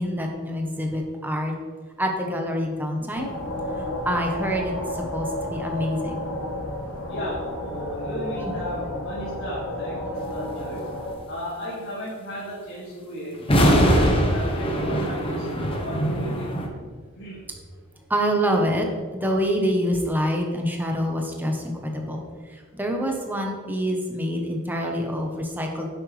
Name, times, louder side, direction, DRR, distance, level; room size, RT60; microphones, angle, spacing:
voice 1, 0.0-1.5 2.0-3.3 3.8-6.2 8.4-8.6 16.8-17.0 18.1-18.9 19.1-22.2 22.5-25.9, equal, 10° right, 1 dB, 1.1 m, -26 dB
sound 1, 3.2-11.1, left 1 dB, 85° left, 1.6 m, -32 dB
voice 2, 7.1-10.8 11.3-15.5 15.8-16.5 17.1-17.4, equal, 60° left, -8 dB, 2.3 m, -35 dB
sound 2, 13.4-16.7, equal, 25° left, 1.0 m, -21 dB
9.9 x 7.7 x 3.4 m, 1.5 s
head